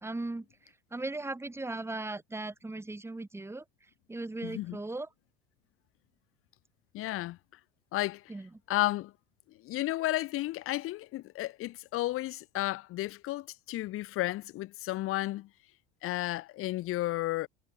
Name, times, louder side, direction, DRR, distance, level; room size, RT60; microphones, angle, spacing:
voice 1, 0.0-0.4 0.9-3.6 4.1-5.1 8.3-8.5, right 2 dB, 10° right, 3.9 m, -37 dB
voice 2, 4.4-4.8 6.9-7.4 7.9-8.2 8.7-9.1 9.6-15.5 16.0-17.5, left 16 dB, 50° left, 5.8 m, -32 dB
figure-of-eight pair, 75°, 29 cm